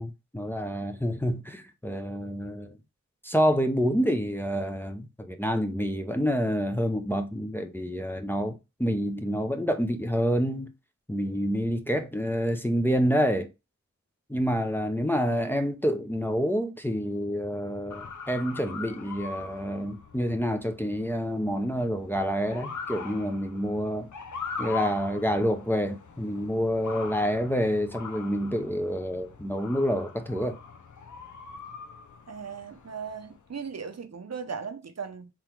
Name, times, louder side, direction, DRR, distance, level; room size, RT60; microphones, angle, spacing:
voice 1, 0.0-2.8 3.2-10.7 11.1-13.5 14.3-24.1 24.6-30.6, equal, 5° left, 0.6 m, -28 dB
Motor vehicle (road) / Siren, 17.9-33.5, left 5 dB, 85° left, 0.6 m, -42 dB
voice 2, 32.3-35.3, right 6 dB, 60° right, 0.7 m, -37 dB
3.7 x 2.9 x 4.5 m
wide cardioid pair, 65°, 29 cm